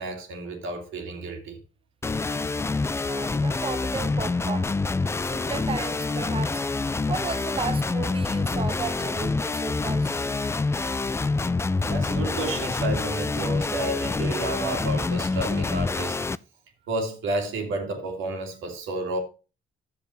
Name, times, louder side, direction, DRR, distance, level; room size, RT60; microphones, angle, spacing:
voice 1, 0.0-1.6 11.6-16.2 16.9-19.2, right 2 dB, 85° right, 2.4 m, -31 dB
sound 1, 2.0-16.4, left 3 dB, 15° left, 0.3 m, -26 dB
voice 2, 3.0-4.7 5.2-6.6 7.1-10.4, right 5 dB, 25° right, 0.6 m, -34 dB
11.0 x 7.1 x 3.1 m
cardioid pair, 90°, 20 cm